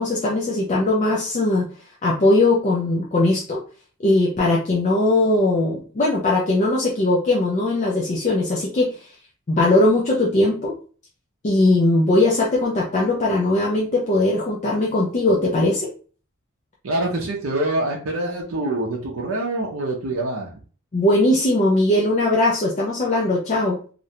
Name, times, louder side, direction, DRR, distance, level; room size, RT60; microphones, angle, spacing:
voice 1, 0.0-1.7 2.0-3.6 4.0-9.1 9.5-10.8 11.4-15.9 20.9-23.8, left 2 dB, 35° left, -3 dB, 0.4 m, -19 dB
voice 2, 16.8-20.6, right 1 dB, 75° right, -1 dB, 0.5 m, -25 dB
2.5 x 2.1 x 2.8 m, 0.40 s
head